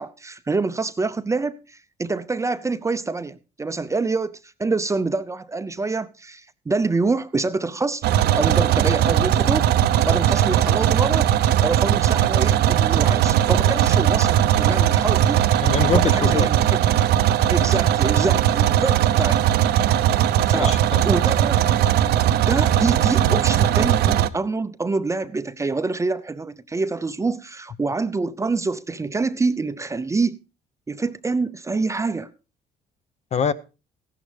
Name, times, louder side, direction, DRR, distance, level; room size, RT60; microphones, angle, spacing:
voice 1, 0.0-8.0 8.3-9.7 10.0-11.3 11.6-15.5 15.9-16.8 17.5-19.4 20.5-20.8 21.0-21.6 22.5-30.4 30.9-32.3, right 3 dB, 15° right, 0.6 m, -26 dB
sound 1, 8.0-24.3, right 11 dB, 70° right, 0.8 m, -19 dB
voice 2, 15.6-16.5 17.4-17.5 20.5-21.0 23.3-23.4 33.3-33.5, left 7 dB, 40° left, 0.8 m, -24 dB
15.0 x 11.5 x 3.4 m
cardioid pair, 110°, 17 cm